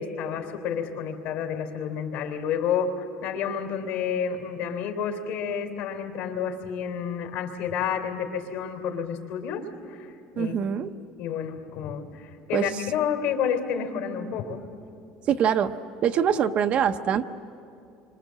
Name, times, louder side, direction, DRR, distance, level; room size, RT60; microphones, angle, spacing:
voice 1, 0.0-10.5 11.2-14.7, left 7 dB, 65° left, 5 dB, 3.3 m, -30 dB
voice 2, 10.4-10.9 12.5-12.7 15.3-15.7 16.0-17.3, right 8 dB, 35° right, 8 dB, 0.7 m, -23 dB
27.5 x 25.0 x 7.5 m, 2.5 s
cardioid pair, 165°, 3 cm